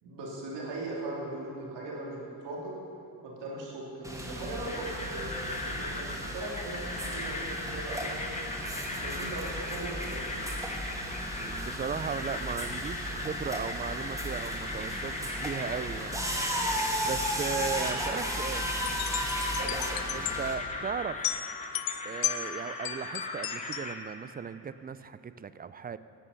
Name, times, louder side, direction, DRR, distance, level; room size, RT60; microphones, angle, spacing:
voice 1, 0.0-2.7 3.4-6.8 7.1-8.4 8.9-10.2 19.6-19.8, right 2 dB, 80° right, -3 dB, 3.1 m, -39 dB
sound 1, 4.0-20.5, equal, 10° right, 1.9 m, -35 dB
sound 2, 4.6-24.0, left 2 dB, 15° left, 1.6 m, -38 dB
voice 2, 11.4-16.2 17.0-18.7 20.1-21.2 22.0-26.0, right 6 dB, 25° right, 15 dB, 0.3 m, -37 dB
sound 3, 18.5-23.9, left 10 dB, 55° left, 0.7 m, -35 dB
11.0 x 8.4 x 7.1 m, 3.0 s
cardioid pair, 90°, 42 cm